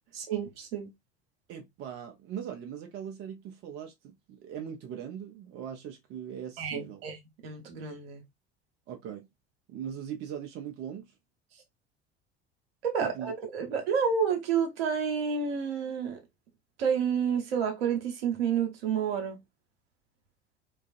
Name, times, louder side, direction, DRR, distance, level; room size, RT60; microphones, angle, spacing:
voice 1, 0.3-0.9 6.6-7.2 7.4-8.2 12.8-16.2 16.8-19.4, right 7 dB, 65° right, 0.9 m, -29 dB
voice 2, 1.5-7.0 8.9-9.3 9.7-11.1 13.0-13.3 13.6-13.7, right 9 dB, 35° right, 0.5 m, -40 dB
2.4 x 2.3 x 2.4 m
figure-of-eight pair, 70°, 32 cm